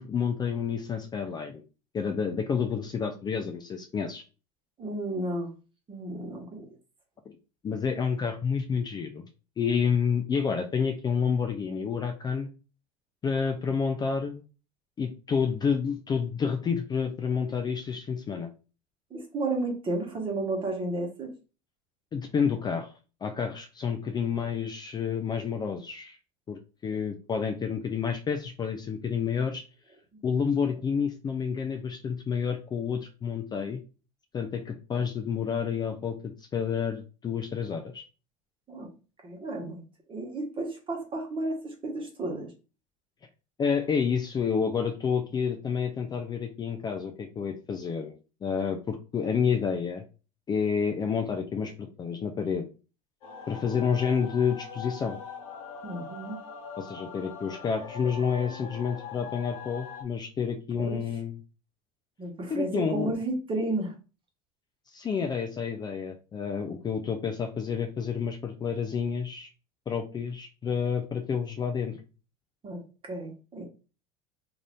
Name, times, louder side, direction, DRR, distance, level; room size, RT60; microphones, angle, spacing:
voice 1, 0.0-1.6 1.9-4.2 7.3-7.4 7.6-9.2 9.6-12.5 13.2-14.4 15.0-18.5 22.1-22.9 23.2-26.2 26.5-29.6 30.2-33.8 34.3-38.0 43.6-48.1 48.4-50.0 50.5-52.7 53.5-55.2 56.8-61.4 62.5-63.1 64.9-69.5 69.9-72.0, left 6 dB, 25° left, 5 dB, 0.4 m, -29 dB
voice 2, 4.8-5.5 5.9-6.7 19.1-21.3 30.1-30.2 38.7-38.9 39.2-39.8 40.1-42.5 55.8-56.4 60.8-61.0 62.2-63.9 72.6-73.6, right 2 dB, 30° right, 2 dB, 1.1 m, -32 dB
sound 1, 53.2-60.0, left 5 dB, 70° left, 1.0 m, -42 dB
2.6 x 2.5 x 3.4 m, 0.34 s
supercardioid pair, 95°, 18 cm